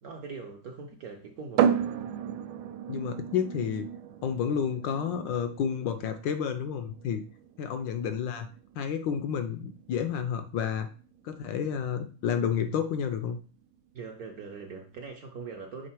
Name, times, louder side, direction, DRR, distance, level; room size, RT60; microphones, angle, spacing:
voice 1, 0.0-1.7 13.9-15.9, right 4 dB, 65° right, 2 dB, 0.9 m, -41 dB
sound 1, 1.6-15.1, right 8 dB, 85° right, 1.4 m, -35 dB
voice 2, 2.9-3.9 4.2-7.2 7.6-8.5 8.8-10.9 11.2-13.4, left 7 dB, 75° left, 9 dB, 1.1 m, -30 dB
6.6 x 3.6 x 4.4 m, 0.37 s
omnidirectional pair, 2.3 m